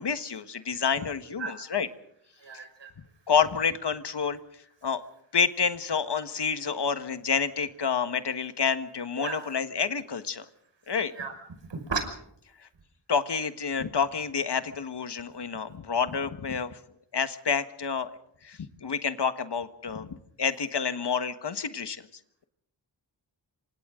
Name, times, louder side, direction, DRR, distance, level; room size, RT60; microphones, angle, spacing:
voice 1, 0.0-1.9 2.5-2.6 3.3-4.4 4.8-5.0 5.3-10.4 10.9-11.1 12.6-12.7 13.1-16.8 17.1-18.1 18.4-22.1, left 6 dB, 65° left, 11 dB, 1.5 m, -28 dB
voice 2, 2.4-2.9 9.2-9.5 11.2-11.3 11.7-12.0, right 5 dB, 75° right, 5 dB, 5.8 m, -34 dB
27.5 x 25.5 x 3.8 m, 0.71 s
wide cardioid pair, 115°, 44 cm